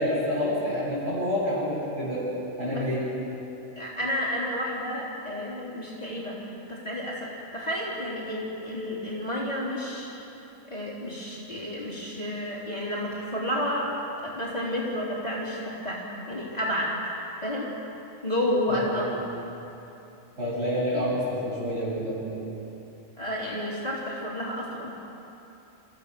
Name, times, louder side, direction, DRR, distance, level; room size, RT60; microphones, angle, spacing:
voice 1, 0.0-2.2 2.6-3.1 18.7-19.1 20.4-22.4, equal, 55° right, -11 dB, 7.1 m, -28 dB
voice 2, 3.8-6.4 6.7-10.1 10.7-13.9 14.2-16.9 17.4-17.7 18.2-19.1 23.2-24.9, left 1 dB, 30° left, -6 dB, 3.4 m, -31 dB
26.0 x 15.0 x 6.7 m, 3.0 s
omnidirectional pair, 1.4 m